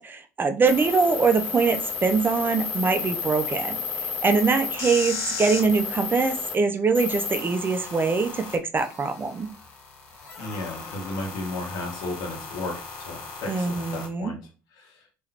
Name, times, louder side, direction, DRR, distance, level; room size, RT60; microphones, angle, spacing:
voice 1, 0.0-3.8 4.2-9.5 13.5-14.3, right 4 dB, 30° right, 7 dB, 0.6 m, -23 dB
sound 1, 0.6-6.5 6.9-14.1, left 5 dB, 80° left, 0.8 m, -33 dB
voice 2, 10.4-14.4 14.7-15.0, left 2 dB, 65° left, 1 dB, 1.4 m, -34 dB
3.8 x 3.0 x 2.9 m, 0.33 s
hypercardioid pair, 65°, 7 cm